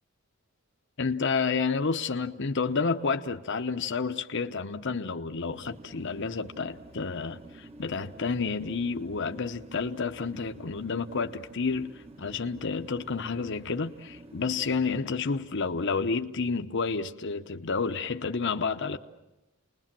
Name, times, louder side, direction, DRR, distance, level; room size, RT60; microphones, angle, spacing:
voice 1, 1.0-19.0, left 4 dB, 60° left, 0.9 m, -30 dB
sound 1, 5.5-15.0, right 2 dB, 30° right, 1.4 m, -50 dB
29.5 x 20.5 x 7.5 m
head